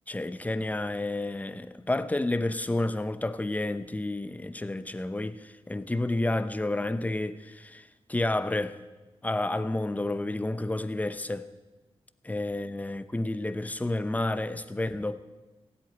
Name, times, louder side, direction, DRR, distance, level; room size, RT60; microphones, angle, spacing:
voice 1, 0.1-8.8 9.2-11.5 12.2-15.2, left 2 dB, 15° left, 0.7 m, -30 dB
16.5 x 8.1 x 9.3 m
wide cardioid pair, 100°, 10 cm